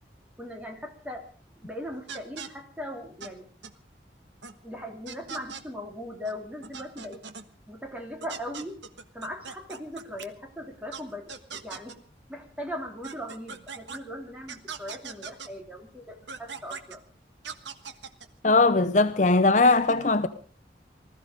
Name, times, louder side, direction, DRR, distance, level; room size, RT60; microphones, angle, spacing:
voice 1, 0.4-1.2 1.6-3.5 4.6-7.2 7.7-8.8 9.1-12.0 12.3-17.0, equal, 10° right, 3.0 m, -39 dB
sound 1, 2.1-2.5 3.2-3.3 3.6-3.7 4.4-4.5 5.1-5.6 6.3-6.4 6.6-7.4 8.2-10.3 10.9-11.0 11.3-12.0 13.0-14.0 14.5-15.5 16.3-17.0 17.4-18.3, right 6 dB, 90° right, 1.4 m, -40 dB
voice 2, 18.4-20.3, left 3 dB, 45° left, 0.7 m, -20 dB
20.0 x 14.0 x 5.1 m
head